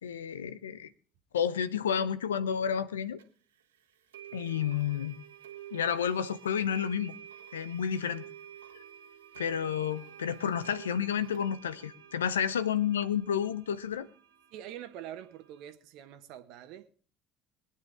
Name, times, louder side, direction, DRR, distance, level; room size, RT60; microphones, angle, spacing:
voice 1, 0.0-0.9 1.3-3.2 4.3-5.2 5.7-7.1 7.5-8.2 9.4-14.1, left 8 dB, 85° left, 0.7 m, -30 dB
sound 1, 3.2-3.3 4.1-15.7, right 10 dB, 85° right, 1.7 m, -50 dB
voice 2, 14.5-16.9, right 11 dB, 65° right, 1.4 m, -45 dB
22.5 x 9.5 x 3.6 m
hypercardioid pair, 60°, 0 cm